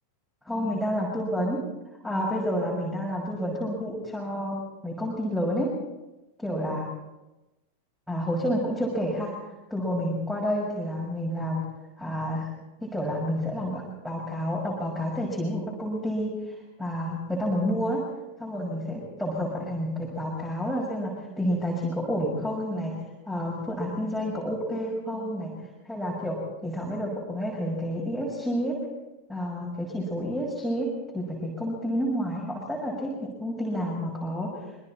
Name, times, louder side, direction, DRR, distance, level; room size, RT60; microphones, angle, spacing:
voice 1, 0.4-1.6 2.0-5.7 6.4-6.9 8.1-9.3 9.7-11.6 12.0-12.5 12.8-18.0 18.4-22.9 23.3-25.5 25.8-26.4 26.6-28.7 29.3-30.9 31.1-34.5, equal, ahead, -4 dB, 6.3 m, -29 dB
26.5 x 23.5 x 4.4 m, 1.0 s
figure-of-eight pair, 90°, 0 cm